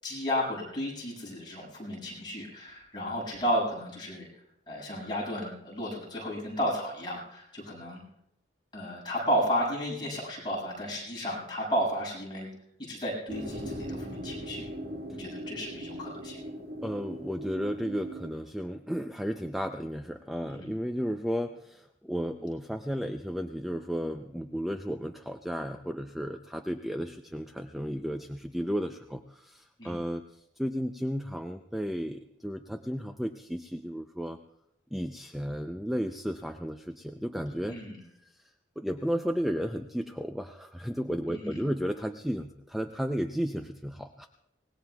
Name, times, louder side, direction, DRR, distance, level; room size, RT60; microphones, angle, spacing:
voice 1, 0.0-4.3 4.7-8.0 8.7-12.5 12.8-14.7 15.2-16.4 20.5-20.7 29.8-30.0 37.7-38.0 41.3-41.6, equal, 25° left, -4 dB, 6.8 m, -33 dB
sound 1, 13.3-18.3, equal, 55° right, 1.7 m, -39 dB
voice 2, 16.8-30.2 30.6-34.4 34.9-37.8 38.2-44.3, equal, ahead, 5 dB, 0.5 m, -33 dB
24.5 x 19.5 x 2.3 m, 0.79 s
head